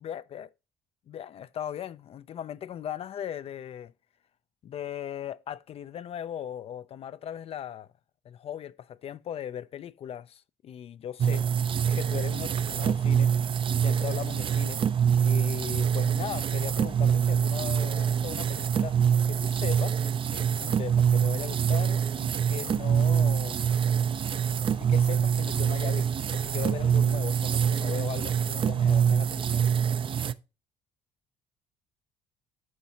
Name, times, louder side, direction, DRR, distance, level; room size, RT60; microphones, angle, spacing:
voice 1, 0.0-0.5 1.1-3.9 4.6-7.9 8.3-11.5 11.9-13.3 13.8-14.8 15.2-19.0 19.3-23.6 24.8-29.7, left 10 dB, 50° left, 0.4 m, -38 dB
sound 1, 11.2-30.3, right 8 dB, 40° right, 0.5 m, -25 dB
9.4 x 6.1 x 2.8 m
hypercardioid pair, 60°, 13 cm